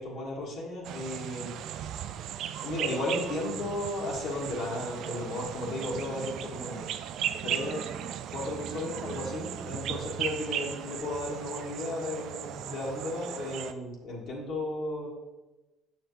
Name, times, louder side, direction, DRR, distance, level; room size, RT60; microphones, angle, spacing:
voice 1, 0.0-1.5 2.6-6.9 7.4-7.8 8.3-15.1, left 1 dB, 60° left, -3 dB, 1.9 m, -34 dB
sound 1, 0.8-13.7, right 10 dB, 65° right, 0.4 m, -37 dB
7.4 x 6.0 x 3.2 m, 1.1 s
supercardioid pair, 80°, 0 cm